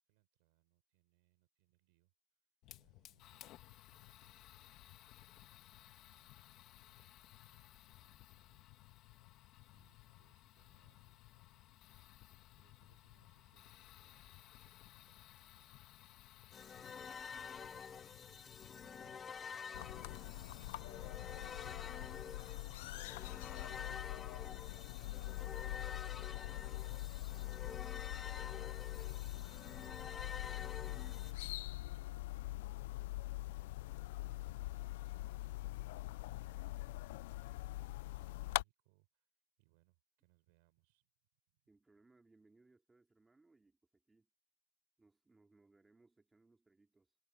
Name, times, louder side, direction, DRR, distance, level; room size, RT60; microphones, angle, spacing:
voice 1, 0.0-2.1 2.7-5.2 6.0-8.8 9.2-11.8 12.5-16.3 16.6-17.7 18.8-19.3 19.9-24.5 24.8-39.3 39.6-41.1 41.5-41.6, right 26 dB, 60° right, 4.5 m, -76 dB
Fire, 2.6-20.2, left 15 dB, 40° left, 1.6 m, -60 dB
sound 1, 16.5-31.3, left 6 dB, 15° left, 0.5 m, -49 dB
sound 2, 19.7-38.6, left 18 dB, 75° left, 0.3 m, -43 dB
voice 2, 41.7-44.3 45.0-47.2, right 3 dB, 10° right, 2.9 m, -70 dB
supercardioid pair, 170°, 0 cm